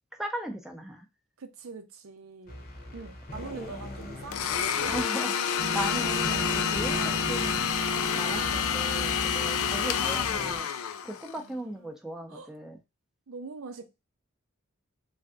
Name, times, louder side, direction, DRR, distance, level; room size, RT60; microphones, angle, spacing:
voice 1, 0.2-1.0 3.6-3.7 4.9-10.7 11.0-12.8, right 1 dB, ahead, 0.5 m, -38 dB
voice 2, 1.4-2.7 2.9-5.2 5.9-6.3 9.6-9.8 11.4-11.9 12.3-12.5 13.3-13.8, right 4 dB, 85° right, 0.6 m, -44 dB
sound 1, 2.5-10.6, left 1 dB, 45° left, 0.8 m, -42 dB
Domestic sounds home sounds, 4.3-11.4, left 7 dB, 85° left, 0.4 m, -28 dB
sound 2, 5.6-10.6, right 1 dB, 45° right, 0.7 m, -37 dB
3.3 x 2.6 x 2.4 m
head